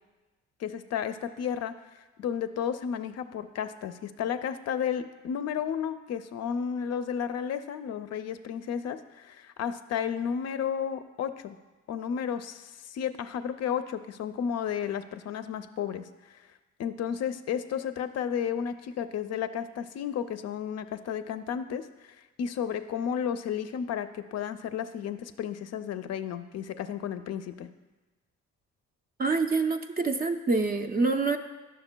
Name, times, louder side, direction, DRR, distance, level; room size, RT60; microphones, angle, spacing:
voice 1, 0.6-1.7 2.2-11.6 11.9-16.4 16.8-27.7, left 8 dB, 60° left, 10 dB, 0.4 m, -33 dB
voice 2, 29.2-31.4, right 3 dB, 30° right, 6 dB, 0.4 m, -26 dB
9.8 x 6.4 x 2.2 m, 1.2 s
cardioid pair, 90°, 30 cm